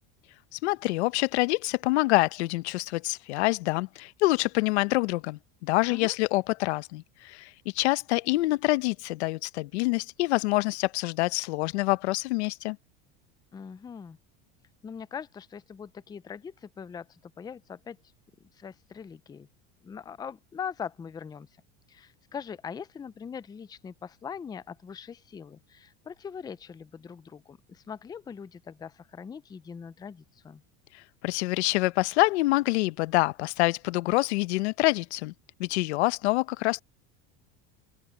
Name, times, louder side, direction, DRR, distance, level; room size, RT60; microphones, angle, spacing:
voice 1, 0.5-12.8 30.9-35.3 35.6-36.8, left 21 dB, 90° left, 0.9 m, -26 dB
voice 2, 13.5-14.2 14.8-18.0 18.6-19.5 19.8-21.5 21.9-30.6, left 7 dB, 10° left, 0.5 m, -41 dB
open air
supercardioid pair, 140°, 33 cm